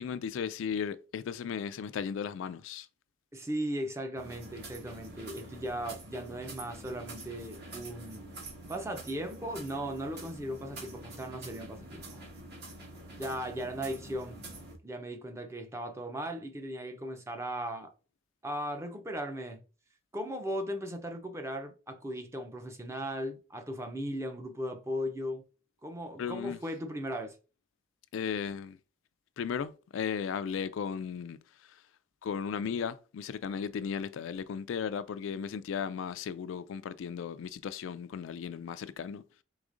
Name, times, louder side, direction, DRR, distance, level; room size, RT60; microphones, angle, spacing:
voice 1, 0.0-2.9 26.2-26.6 28.1-28.8 29.4-31.4 32.2-39.2, left 7 dB, 75° left, 0.3 m, -35 dB
voice 2, 3.3-8.2 8.7-12.2 13.2-14.4 14.8-17.9 18.4-19.6 20.1-25.4 25.8-27.4, equal, 15° right, 0.6 m, -37 dB
sound 1, 4.2-14.8, right 2 dB, 50° right, 1.6 m, -46 dB
4.8 x 3.5 x 2.5 m
head